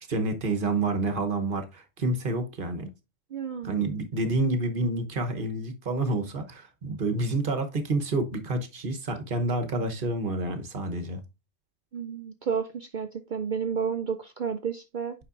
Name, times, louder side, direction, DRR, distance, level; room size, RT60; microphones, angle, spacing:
voice 1, 0.1-2.9 3.6-11.2, right 2 dB, 45° right, 1.1 m, -28 dB
voice 2, 3.3-3.8 11.9-15.1, right 6 dB, 65° right, 0.4 m, -31 dB
8.3 x 5.3 x 2.5 m
omnidirectional pair, 1.3 m